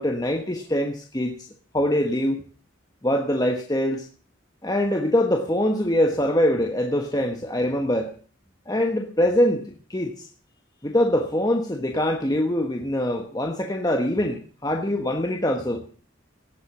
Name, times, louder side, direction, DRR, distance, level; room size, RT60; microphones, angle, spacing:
voice 1, 0.0-1.3 1.7-2.4 3.0-4.0 4.6-8.1 8.7-10.1 10.8-15.8, left 1 dB, 20° left, 2 dB, 1.2 m, -23 dB
17.0 x 8.1 x 7.0 m, 0.42 s
head